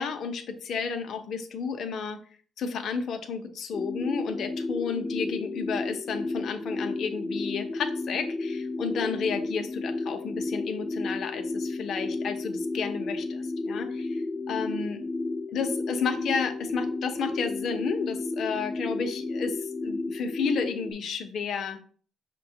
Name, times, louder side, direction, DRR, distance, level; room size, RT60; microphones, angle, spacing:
voice 1, 0.0-2.2 2.6-15.0 15.5-21.8, left 5 dB, 65° left, 7 dB, 0.6 m, -32 dB
sound 1, 3.7-20.9, left 2 dB, 20° left, 0.3 m, -32 dB
5.3 x 2.2 x 2.7 m, 0.43 s
cardioid pair, 90°, 0 cm